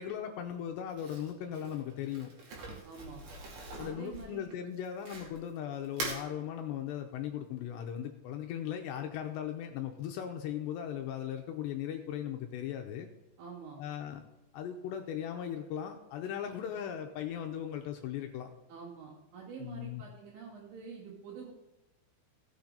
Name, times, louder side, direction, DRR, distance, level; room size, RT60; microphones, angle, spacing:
voice 1, 0.0-2.3 3.8-13.1 13.8-14.2 14.5-18.5 19.6-20.0, left 9 dB, 80° left, 4 dB, 2.7 m, -38 dB
Crumpling crinkling, 0.9-5.5 5.8-6.2, right 2 dB, 60° right, 3.8 m, -43 dB
voice 2, 2.8-3.2 3.8-4.5 13.4-13.8 18.7-21.5, right 5 dB, 80° right, -8 dB, 4.6 m, -46 dB
17.0 x 7.3 x 3.9 m, 1.0 s
omnidirectional pair, 5.4 m